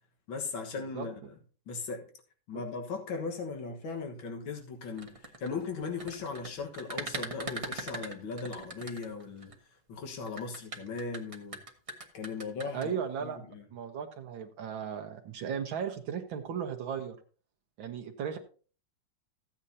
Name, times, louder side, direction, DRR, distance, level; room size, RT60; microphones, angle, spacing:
voice 1, 0.3-1.2 1.7-2.1 2.5-9.5 9.9-11.6 12.1-12.9 13.2-13.6, left 4 dB, 85° left, 2.2 m, -38 dB
sound 1, 4.9-9.5 10.3-12.9, right 2 dB, 25° right, 0.8 m, -40 dB
voice 2, 12.7-13.4 13.7-17.2 17.8-18.4, right 7 dB, 80° right, 1.8 m, -36 dB
14.5 x 8.9 x 2.8 m
omnidirectional pair, 2.1 m